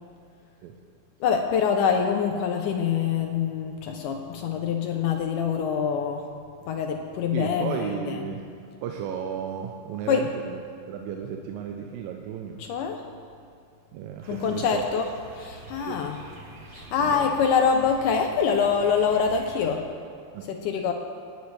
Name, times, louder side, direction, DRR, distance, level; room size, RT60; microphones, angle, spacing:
voice 1, 1.2-6.3 6.6-8.2 10.1-10.3 12.6-13.0 14.3-15.1 15.4-16.2 16.7-19.9 20.5-20.9, left 6 dB, 75° left, 4 dB, 2.0 m, -25 dB
voice 2, 7.3-8.5 8.8-10.6 10.9-12.6 13.9-14.9 15.9-16.1 17.0-17.4 20.3-20.5, right 8 dB, 85° right, 3 dB, 2.4 m, -34 dB
sound 1, 14.2-19.7, right 2 dB, 65° right, 1.0 m, -46 dB
19.5 x 9.4 x 3.3 m, 2.5 s
omnidirectional pair, 4.1 m